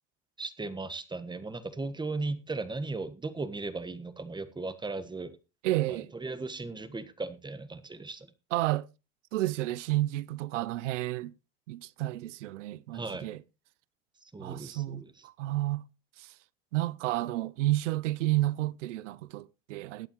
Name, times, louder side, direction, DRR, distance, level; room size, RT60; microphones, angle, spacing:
voice 1, 0.4-5.4 5.9-8.3 12.9-13.3 14.3-15.1, right 3 dB, 10° right, 1.3 m, -37 dB
voice 2, 5.6-6.1 8.5-8.9 9.3-11.3 11.7-13.4 14.4-15.8 16.2-16.3 16.7-20.1, right 17 dB, 85° right, 0.6 m, -31 dB
20.5 x 8.7 x 3.0 m
hypercardioid pair, 95°, 36 cm